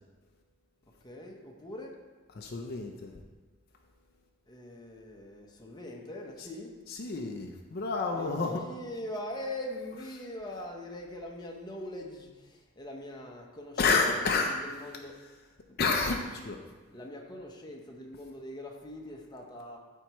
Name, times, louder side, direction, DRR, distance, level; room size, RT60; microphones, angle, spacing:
voice 1, 1.0-2.0 4.5-6.7 8.1-14.0 14.5-15.2 16.9-19.8, left 1 dB, 20° left, 0 dB, 0.9 m, -42 dB
voice 2, 2.3-3.1 6.4-6.5 6.9-8.6 10.2-10.3 13.8-14.5 15.8-16.6, left 4 dB, 55° left, 2 dB, 0.6 m, -29 dB
12.5 x 4.6 x 3.0 m, 1.3 s
head